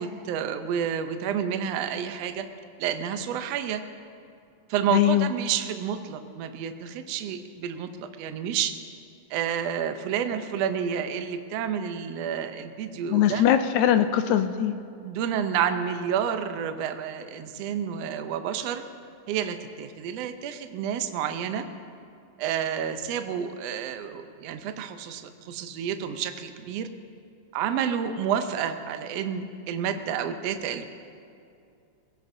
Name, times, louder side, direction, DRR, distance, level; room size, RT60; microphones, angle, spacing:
voice 1, 0.0-2.5 2.8-3.8 4.7-8.7 9.3-13.4 15.0-18.8 19.3-21.6 22.4-26.9 27.5-30.8, right 8 dB, 80° right, 8 dB, 1.4 m, -30 dB
voice 2, 4.9-5.3 13.1-14.7, left 11 dB, 80° left, 9 dB, 1.7 m, -21 dB
22.5 x 16.0 x 2.7 m, 2.5 s
omnidirectional pair, 3.8 m